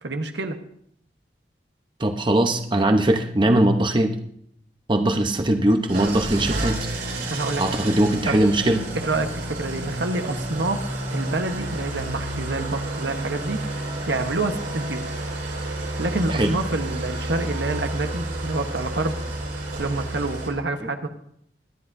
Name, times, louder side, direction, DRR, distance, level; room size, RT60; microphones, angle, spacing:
voice 1, 0.0-0.6 7.3-7.6 8.3-8.4 8.9-15.0 16.0-19.2 19.8-21.1, right 2 dB, 85° right, 6 dB, 1.2 m, -27 dB
voice 2, 2.0-4.2 4.9-6.8 7.6-8.8 16.3-16.5 20.8-20.9, right 1 dB, 30° right, 5 dB, 0.9 m, -20 dB
Engine starting / Idling, 5.9-20.5, right 1 dB, 60° right, 4.5 m, -30 dB
23.5 x 10.0 x 2.7 m, 0.69 s
head